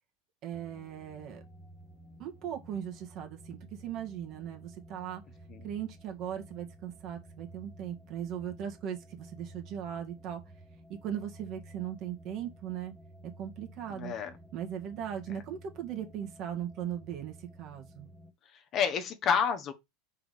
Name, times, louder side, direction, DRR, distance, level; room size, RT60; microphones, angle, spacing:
voice 1, 0.4-1.4 2.2-5.2 5.6-10.4 10.9-12.9 13.2-14.1 14.5-18.1, right 9 dB, 50° right, 1.7 m, -38 dB
sound 1, 0.5-18.3, right 1 dB, ahead, 1.1 m, -53 dB
voice 2, 14.0-14.3 18.7-19.7, left 7 dB, 40° left, 1.1 m, -29 dB
5.0 x 3.8 x 5.0 m
supercardioid pair, 105°, 0 cm